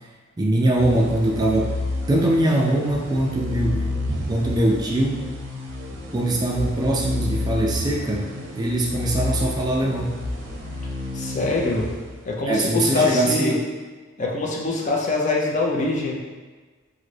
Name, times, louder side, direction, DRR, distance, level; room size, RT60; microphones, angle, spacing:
voice 1, 0.4-1.7 2.1-5.3 6.1-8.3 8.5-10.2 12.5-13.6, right 1 dB, 20° right, -2 dB, 0.3 m, -22 dB
sound 1, 0.8-12.6, left 2 dB, 80° right, 0.6 m, -30 dB
voice 2, 11.1-11.9 12.3-13.5 14.2-16.2, left 3 dB, 40° left, -2 dB, 0.5 m, -23 dB
3.8 x 2.1 x 3.2 m, 1.4 s
head